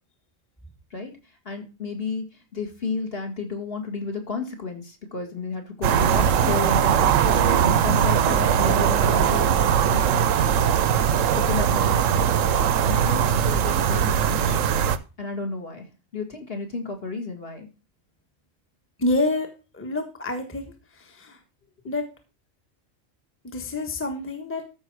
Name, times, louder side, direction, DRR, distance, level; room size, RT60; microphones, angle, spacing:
voice 1, 0.9-10.3 11.2-12.3 12.8-14.6 15.2-17.7, left 4 dB, 45° left, 4 dB, 2.4 m, -32 dB
sound 1, 5.8-15.0, right 8 dB, 75° right, 1.1 m, -20 dB
voice 2, 19.0-19.5 19.7-20.6 21.1-21.4 21.9-22.0 23.4-24.6, left 2 dB, 10° left, 5 dB, 1.3 m, -27 dB
13.5 x 5.8 x 4.7 m, 0.31 s
omnidirectional pair, 1.4 m